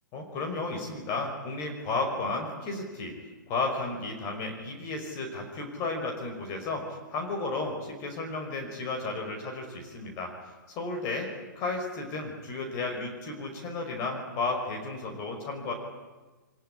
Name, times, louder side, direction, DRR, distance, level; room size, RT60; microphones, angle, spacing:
voice 1, 0.1-3.1 3.5-10.3 10.8-11.3 11.6-15.7, left 3 dB, 30° left, 2 dB, 5.4 m, -33 dB
24.0 x 21.5 x 9.9 m, 1.2 s
figure-of-eight pair, 115°, 11 cm